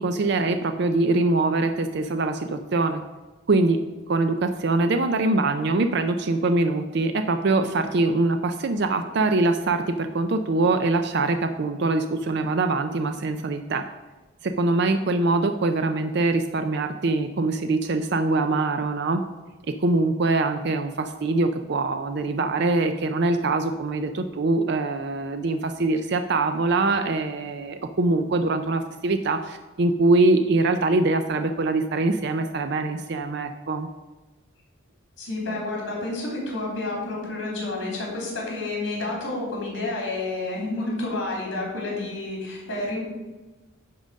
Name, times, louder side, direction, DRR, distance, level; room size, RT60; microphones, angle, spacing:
voice 1, 0.0-3.0 3.5-3.8 4.1-13.8 14.4-19.2 19.8-33.9, right 2 dB, 60° right, 7 dB, 0.5 m, -23 dB
voice 2, 35.2-43.0, left 2 dB, 60° left, -3 dB, 3.2 m, -30 dB
10.5 x 3.8 x 6.3 m, 1.2 s
head